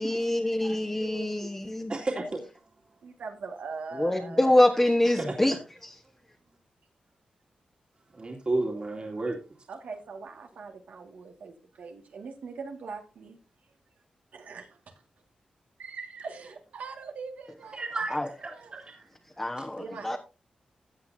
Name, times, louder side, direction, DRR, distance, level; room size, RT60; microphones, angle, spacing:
voice 1, 0.0-2.0 4.0-5.5 18.1-18.3 19.4-20.2, left 1 dB, 20° left, 1.3 m, -25 dB
voice 2, 0.6-1.5 1.8-1.9 3.0-4.7 9.7-13.4 14.3-14.8 15.8-18.0 18.5-18.8 19.8-20.2, right 4 dB, 85° right, 2.0 m, -41 dB
voice 3, 1.9-2.4 5.2-5.4 8.1-9.4 17.7-18.5 18.8-19.0, right 2 dB, 40° right, 2.3 m, -31 dB
15.0 x 8.1 x 2.7 m
cardioid pair, 65°, 3 cm